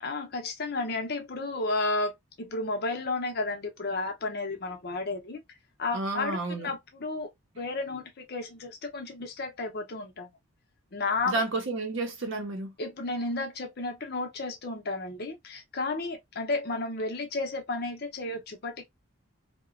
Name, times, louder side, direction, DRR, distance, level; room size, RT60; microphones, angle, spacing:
voice 1, 0.0-5.4 5.8-7.3 7.6-10.3 10.9-11.4 12.8-18.9, left 3 dB, 50° left, 0.7 m, -32 dB
voice 2, 5.9-6.7 11.2-12.7, right 2 dB, 60° right, 0.7 m, -31 dB
2.9 x 2.1 x 2.4 m
head